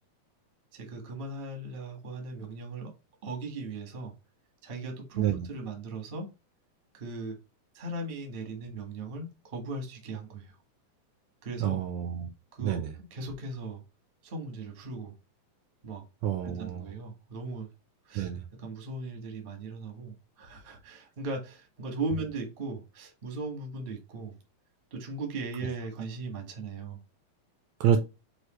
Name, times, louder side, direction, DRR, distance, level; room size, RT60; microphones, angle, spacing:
voice 1, 0.7-2.9 3.2-4.1 4.6-6.3 6.9-7.4 7.7-10.5 11.4-11.8 12.5-13.8 14.2-15.1 15.8-16.0 16.4-17.7 18.0-18.3 18.6-24.3 24.9-27.0, right 3 dB, 35° right, 0.8 m, -38 dB
voice 2, 11.6-12.3 12.6-12.9 16.2-16.8 18.1-18.4 27.8-28.0, right 9 dB, 80° right, 1.7 m, -28 dB
6.2 x 2.8 x 3.0 m
omnidirectional pair, 3.6 m